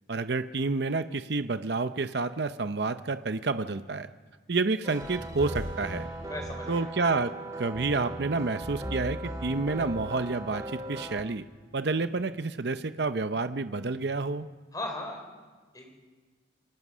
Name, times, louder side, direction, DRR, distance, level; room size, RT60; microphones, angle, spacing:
voice 1, 0.1-4.1 4.5-6.1 6.7-7.3 7.6-11.5 11.7-14.5, right 3 dB, 60° right, 11 dB, 0.7 m, -29 dB
sound 1, 4.8-11.2, right 1 dB, 20° right, 2.1 m, -37 dB
sound 2, 4.9-7.1, left 1 dB, 80° left, 1.0 m, -46 dB
sound 3, 5.0-12.3, left 1 dB, 90° right, 3.5 m, -62 dB
voice 2, 6.2-6.9 14.7-15.2 15.7-15.9, left 1 dB, 20° left, 3 dB, 4.2 m, -37 dB
27.5 x 22.5 x 6.3 m, 1.4 s
head